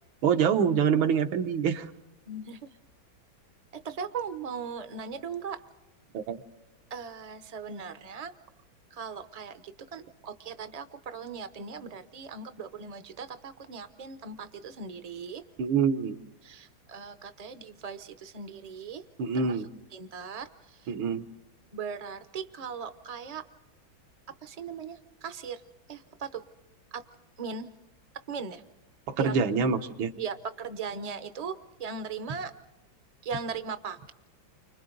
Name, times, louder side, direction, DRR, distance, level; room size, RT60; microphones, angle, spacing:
voice 1, 0.2-1.9 6.1-6.4 15.6-16.2 19.2-19.7 20.9-21.3 29.1-30.1, right 6 dB, 85° right, 7 dB, 1.8 m, -25 dB
voice 2, 2.3-2.6 3.8-5.6 6.9-8.3 9.0-9.5 9.9-15.4 16.4-19.0 19.4-19.5 19.9-20.5 21.7-23.4 24.4-25.0 25.2-25.6 25.9-26.4 26.9-27.0 27.4-27.7 28.3-28.6 29.2-29.3 30.2-31.5 31.8-32.5 33.2-34.1, right 5 dB, 55° right, 9 dB, 0.4 m, -38 dB
30.0 x 25.5 x 3.9 m, 0.99 s
omnidirectional pair, 2.1 m